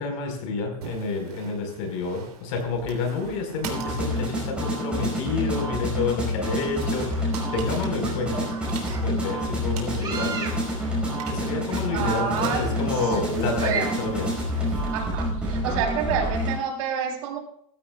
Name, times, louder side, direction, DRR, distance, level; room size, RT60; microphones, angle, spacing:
voice 1, 0.0-8.5 8.9-10.5 11.3-14.3, left 4 dB, 60° left, 3 dB, 4.8 m, -29 dB
sound 1, 0.8-16.6, right 6 dB, 85° right, 3.2 m, -45 dB
sound 2, 3.6-16.6, equal, 5° right, 5.2 m, -28 dB
sound 3, 6.5-15.2, right 5 dB, 20° right, 2.9 m, -38 dB
voice 2, 11.9-12.6 13.0-13.9 14.9-17.4, right 6 dB, 60° right, 2 dB, 3.6 m, -29 dB
15.5 x 14.0 x 2.4 m, 0.68 s
supercardioid pair, 140°, 19 cm